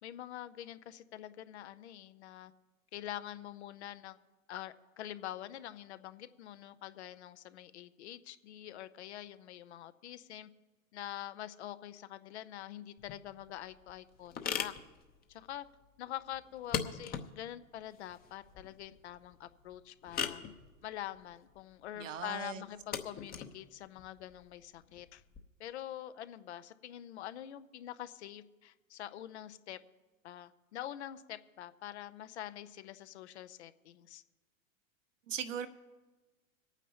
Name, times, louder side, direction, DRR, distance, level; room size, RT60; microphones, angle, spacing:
voice 1, 0.0-2.5 2.9-4.2 4.5-10.5 10.9-14.7 15.3-15.7 16.0-20.4 20.8-25.2 25.6-29.8 30.2-34.2, left 12 dB, 55° left, 13 dB, 0.7 m, -45 dB
sound 1, 13.0-25.4, left 8 dB, 20° left, 0.9 m, -42 dB
voice 2, 21.9-22.6 35.3-35.7, right 8 dB, 65° right, 9 dB, 1.1 m, -39 dB
26.5 x 9.1 x 2.9 m, 1.2 s
figure-of-eight pair, 90°, 40 cm